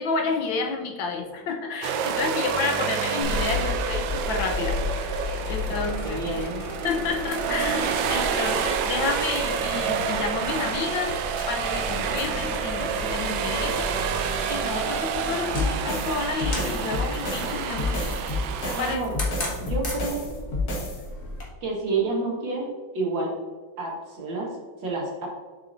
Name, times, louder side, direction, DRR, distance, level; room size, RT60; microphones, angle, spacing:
voice 1, 0.0-6.5 6.8-11.2 11.5-18.0 18.6-19.0, left 4 dB, 80° left, 3 dB, 1.7 m, -30 dB
sound 1, 1.8-19.0, right 6 dB, 90° right, 1.4 m, -28 dB
sound 2, 3.2-21.4, left 3 dB, 30° left, 1.8 m, -35 dB
voice 2, 5.7-6.7 18.7-19.1 19.6-20.3 21.6-23.4 23.8-24.5 24.8-25.3, right 3 dB, 70° right, -3 dB, 2.4 m, -29 dB
sound 3, 15.5-21.0, left 2 dB, 50° left, 1.9 m, -30 dB
7.4 x 6.9 x 2.7 m, 1.5 s
omnidirectional pair, 2.1 m